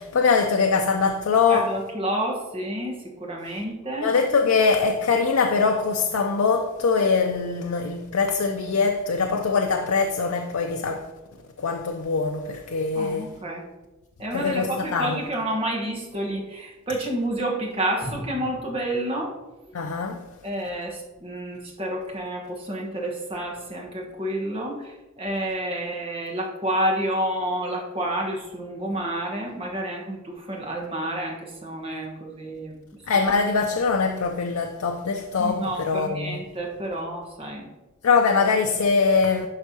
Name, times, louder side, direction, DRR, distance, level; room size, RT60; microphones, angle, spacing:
voice 1, 0.0-1.7 4.0-11.1 11.6-13.3 14.3-15.2 19.7-20.2 33.1-36.4 38.0-39.5, left 4 dB, 85° left, 0.5 m, -22 dB
voice 2, 1.5-4.1 12.9-13.7 14.2-19.3 19.6-19.7 20.4-32.8 35.4-37.7, right 1 dB, 25° right, 1.2 m, -29 dB
sound 1, 18.0-20.2 20.5-20.6, equal, 25° left, 0.7 m, -40 dB
11.5 x 4.5 x 2.8 m
head